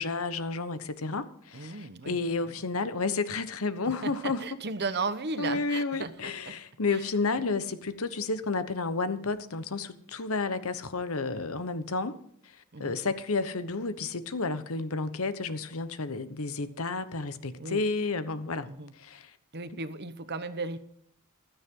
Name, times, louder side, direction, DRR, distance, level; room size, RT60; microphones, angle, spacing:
voice 1, 0.0-4.4 5.4-12.2 12.4-18.7 18.9-19.4 19.7-19.8, left 3 dB, 70° left, 12 dB, 1.1 m, -31 dB
voice 2, 1.5-2.2 2.4-2.6 4.0-6.6 6.9-7.0 12.7-13.0 17.6-17.8 18.6-18.9 19.5-20.8, right 3 dB, 50° right, 12 dB, 1.1 m, -35 dB
16.0 x 13.0 x 3.8 m, 0.68 s
head